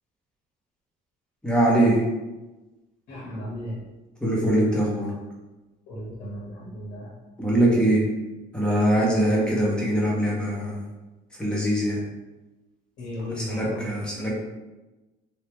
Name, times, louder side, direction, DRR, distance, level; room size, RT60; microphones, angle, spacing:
voice 1, 1.4-2.0 4.2-5.1 7.4-8.0 8.5-10.9 11.4-12.0 13.4-14.4, right 1 dB, 5° left, -5 dB, 1.0 m, -22 dB
voice 2, 3.1-3.8 5.9-7.1 9.0-9.1 13.0-14.1, equal, 85° left, -5 dB, 1.2 m, -35 dB
3.4 x 2.3 x 3.0 m, 1.1 s
cardioid pair, 115°, 17 cm